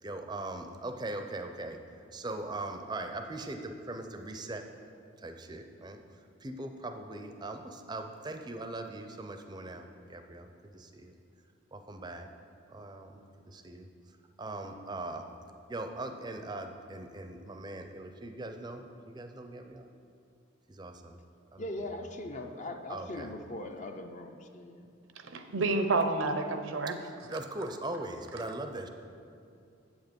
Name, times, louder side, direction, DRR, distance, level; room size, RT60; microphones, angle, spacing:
voice 1, 0.0-1.8 2.1-4.7 5.2-6.0 6.4-11.1 11.7-12.3 12.7-13.2 13.5-13.9 14.4-15.3 15.7-19.9 20.7-21.2 21.5-21.7 22.9-23.3 26.9-28.9, right 2 dB, 20° right, 6 dB, 0.5 m, -40 dB
voice 2, 21.6-24.9 25.5-25.7, left 1 dB, 35° left, 5 dB, 0.6 m, -40 dB
voice 3, 25.3-27.0, right 3 dB, 75° right, 7 dB, 0.7 m, -29 dB
8.1 x 7.9 x 5.3 m, 2.5 s
head